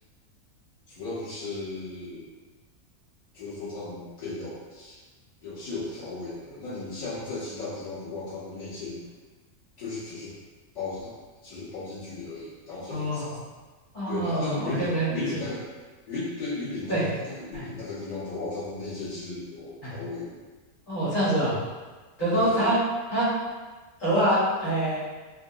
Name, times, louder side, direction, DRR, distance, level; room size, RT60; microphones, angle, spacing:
voice 1, 0.9-2.3 3.3-5.0 5.4-9.0 9.8-10.3 10.7-11.1 11.4-13.5 14.1-15.7 16.1-17.0 17.3-20.4 22.3-22.7, left 3 dB, 30° left, -13 dB, 1.4 m, -35 dB
voice 2, 12.9-13.2 13.9-15.1 15.3-15.4 16.9-17.0 17.5-17.6 19.8-19.9 20.9-21.6 22.2-22.8 23.1-23.3 24.0-25.0, right 1 dB, 60° left, -12 dB, 1.9 m, -25 dB
3.9 x 2.2 x 2.7 m, 1.3 s
omnidirectional pair, 1.5 m